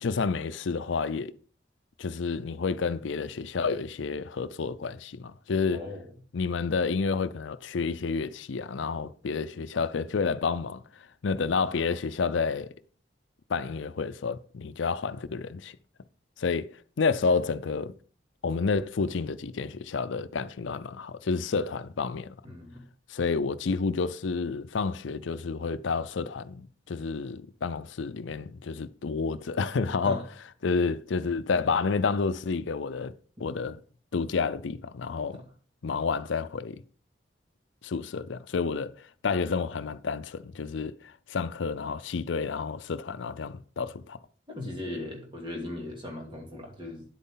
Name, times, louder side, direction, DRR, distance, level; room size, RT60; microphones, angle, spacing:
voice 1, 0.0-1.3 2.0-5.8 6.3-10.8 11.2-12.7 13.5-15.7 16.4-16.7 17.0-17.9 18.4-22.3 23.1-30.2 30.6-33.1 33.4-33.8 34.1-35.4 35.8-36.8 37.8-38.9 39.2-40.9 41.3-44.2, left 4 dB, 75° left, 0.5 m, -29 dB
voice 2, 5.7-6.0 22.4-22.8 30.0-30.2 33.4-33.5 35.3-35.4 44.5-47.0, left 1 dB, 25° right, 2.6 m, -38 dB
10.0 x 8.2 x 3.8 m
head